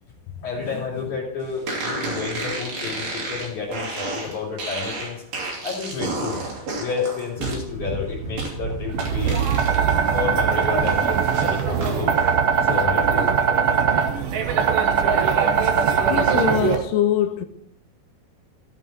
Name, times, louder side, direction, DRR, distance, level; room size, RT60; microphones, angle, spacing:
voice 1, 0.4-5.2 5.6-6.4 6.8-9.5 10.0-12.2 12.6-13.3, left 6 dB, 55° left, 4.1 m, -30 dB
sound 1, 1.7-10.0 10.3-12.0, right 3 dB, 65° right, 4.1 m, -31 dB
sound 2, 8.9-16.7, right 7 dB, 80° right, 1.3 m, -20 dB
voice 2, 16.1-17.5, left 9 dB, 75° left, 2.4 m, -22 dB
16.5 x 5.6 x 4.2 m
omnidirectional pair, 4.3 m